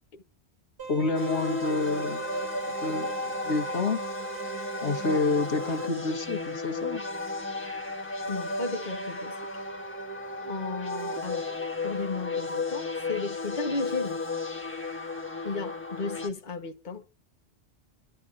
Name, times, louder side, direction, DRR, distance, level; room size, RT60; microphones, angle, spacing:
sound 1, 0.8-5.9, right 5 dB, 65° right, 3.5 m, -39 dB
voice 1, 0.9-4.0 4.8-7.0, left 3 dB, 80° left, 1.6 m, -29 dB
sound 2, 1.1-16.3, left 3 dB, 10° left, 1.6 m, -34 dB
voice 2, 8.3-9.4 10.4-11.5 11.8-14.2 15.4-17.1, left 3 dB, 45° left, 1.3 m, -34 dB
28.5 x 11.5 x 2.5 m
omnidirectional pair, 1.1 m